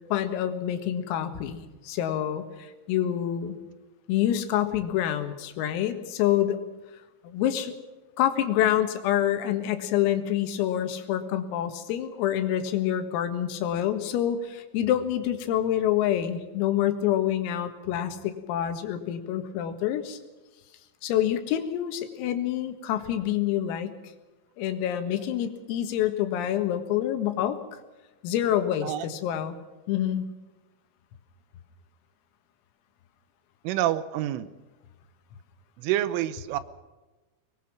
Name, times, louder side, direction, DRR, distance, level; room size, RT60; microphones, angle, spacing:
voice 1, 0.1-3.6 4.1-6.6 7.2-7.8 8.2-20.2 21.0-23.9 24.6-27.8 28.2-29.6 29.9-30.3, left 11 dB, 85° left, 8 dB, 4.3 m, -27 dB
voice 2, 33.6-34.5 35.8-36.6, right 13 dB, 80° right, 14 dB, 3.3 m, -27 dB
24.0 x 21.0 x 6.0 m, 1.1 s
omnidirectional pair, 5.9 m